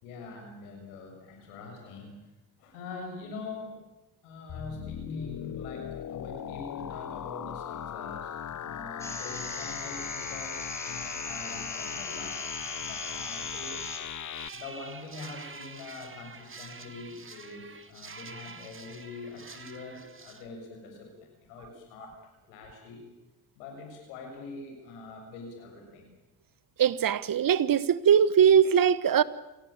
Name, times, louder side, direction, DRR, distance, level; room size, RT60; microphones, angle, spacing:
voice 1, 0.0-2.3 2.6-3.8 4.2-12.4 12.7-13.8 14.2-22.2 22.5-23.0 23.6-26.1, left 3 dB, 85° left, 7.1 m, -44 dB
sound 1, 4.5-14.5, left 9 dB, 45° left, 1.1 m, -38 dB
sound 2, 9.0-14.0, left 1 dB, 5° left, 6.3 m, -39 dB
sound 3, 13.8-20.4, right 4 dB, 30° right, 2.6 m, -47 dB
voice 2, 26.8-29.2, right 8 dB, 50° right, 1.3 m, -21 dB
27.5 x 18.0 x 8.9 m
hypercardioid pair, 55°, 43 cm